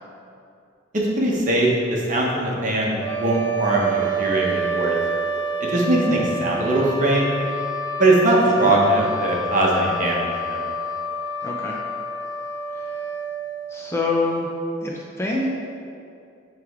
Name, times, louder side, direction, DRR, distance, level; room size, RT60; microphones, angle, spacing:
voice 1, 1.2-5.0 5.6-7.3 8.0-10.6, right 1 dB, 40° right, -3 dB, 1.0 m, -20 dB
sound 1, 3.0-13.9, right 2 dB, 65° right, 1.1 m, -28 dB
voice 2, 8.4-8.7 11.4-11.8 12.7-13.0 13.7-14.5 14.8-15.5, left 2 dB, 15° left, -3 dB, 0.5 m, -26 dB
9.6 x 3.3 x 3.6 m, 2.5 s
head